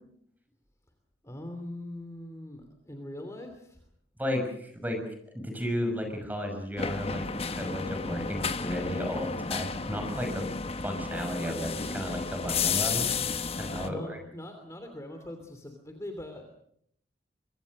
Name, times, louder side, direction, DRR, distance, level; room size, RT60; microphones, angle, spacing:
voice 1, 1.2-3.8 13.8-16.5, left 1 dB, 15° left, 5 dB, 2.9 m, -42 dB
voice 2, 4.2-5.0 5.3-7.2 7.6-10.5 10.8-13.1 13.6-14.2, left 1 dB, 10° right, 5 dB, 5.9 m, -33 dB
sound 1, 6.8-13.9, left 5 dB, 35° left, 1.2 m, -32 dB
25.0 x 23.5 x 6.5 m, 0.70 s
head